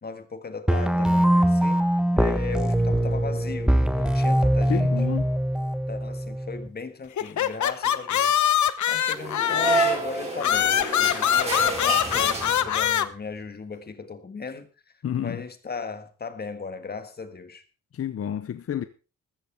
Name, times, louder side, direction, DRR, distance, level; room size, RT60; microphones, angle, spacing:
voice 1, 0.0-1.9 2.2-5.0 5.9-14.7 15.2-17.6, left 4 dB, 35° left, 1.7 m, -37 dB
sound 1, 0.7-6.7, right 1 dB, 5° right, 1.2 m, -22 dB
voice 2, 4.7-5.3 15.0-15.4 17.9-18.8, left 9 dB, 50° left, 0.8 m, -29 dB
sound 2, 7.2-10.0 10.4-13.1, left 10 dB, 75° left, 0.9 m, -23 dB
sound 3, 9.1-13.0, right 3 dB, 20° right, 4.9 m, -29 dB
14.0 x 14.0 x 3.5 m
wide cardioid pair, 130°, 29 cm